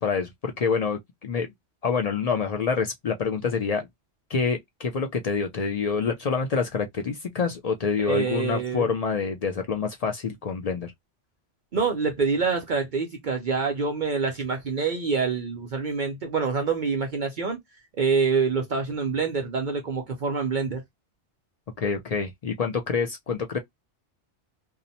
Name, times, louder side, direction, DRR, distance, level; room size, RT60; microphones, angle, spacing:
voice 1, 0.0-1.5 1.8-3.9 4.3-10.9 21.8-23.6, left 5 dB, 65° left, 0.3 m, -27 dB
voice 2, 8.0-8.9 11.7-17.6 18.0-20.8, right 5 dB, 55° right, 0.6 m, -26 dB
2.7 x 2.0 x 2.6 m
omnidirectional pair, 1.2 m